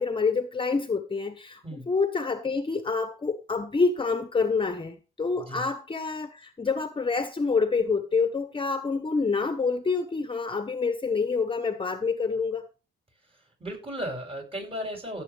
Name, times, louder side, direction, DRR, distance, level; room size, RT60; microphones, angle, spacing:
voice 1, 0.0-12.7, left 4 dB, 25° left, 1.1 m, -27 dB
voice 2, 5.4-5.7 13.2-15.2, equal, 30° right, 7.7 m, -36 dB
16.5 x 8.2 x 3.5 m
cardioid pair, 90°, 20 cm